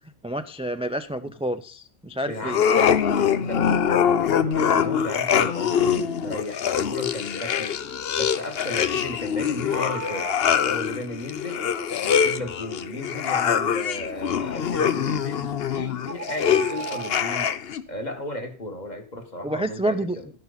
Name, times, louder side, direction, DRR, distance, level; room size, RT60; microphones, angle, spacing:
voice 1, 0.2-2.6 19.4-20.2, right 1 dB, 10° right, 10 dB, 0.4 m, -28 dB
voice 2, 2.3-7.8 8.1-10.3 10.6-11.6 12.0-17.5 17.9-20.3, left 2 dB, 40° left, 5 dB, 1.9 m, -35 dB
sound 1, 2.4-17.8, left 8 dB, 60° left, 0.9 m, -24 dB
sound 2, 9.7-10.6 15.2-15.4 16.0-17.3, right 10 dB, 65° right, 0.9 m, -37 dB
12.5 x 11.0 x 4.1 m, 0.38 s
omnidirectional pair, 1.2 m